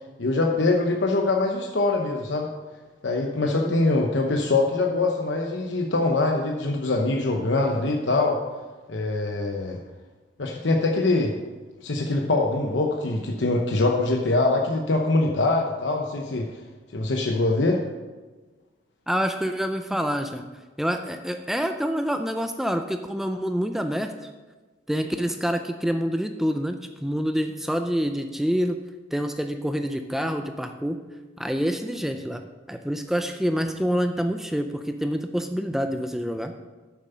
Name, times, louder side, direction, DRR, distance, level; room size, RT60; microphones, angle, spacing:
voice 1, 0.2-2.5 3.0-8.4 8.9-9.8 10.4-11.4 11.8-16.5 16.9-17.8, left 2 dB, 80° left, 1 dB, 0.9 m, -23 dB
voice 2, 3.4-3.7 19.1-20.4 20.8-24.3 24.9-28.8 29.1-31.0 31.4-36.5, equal, ahead, 6 dB, 0.4 m, -27 dB
9.1 x 7.3 x 5.6 m, 1.3 s
head